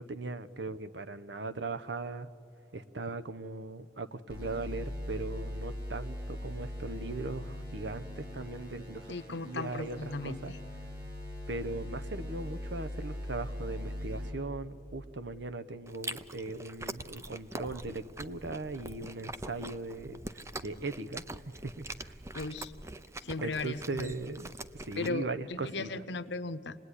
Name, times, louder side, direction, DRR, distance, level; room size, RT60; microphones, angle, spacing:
voice 1, 0.0-2.3 2.7-10.5 11.5-22.1 23.4-24.5 24.8-25.9, right 3 dB, 75° right, 10 dB, 1.0 m, -39 dB
sound 1, 4.3-14.3, left 1 dB, 55° right, 7.9 m, -40 dB
voice 2, 9.1-10.6 22.3-22.7 23.2-24.1 25.0-26.8, left 3 dB, 75° left, 10 dB, 0.9 m, -37 dB
Chewing mastication, 15.9-25.1, right 2 dB, 15° right, 0.6 m, -44 dB
27.5 x 19.5 x 10.0 m, 2.5 s
head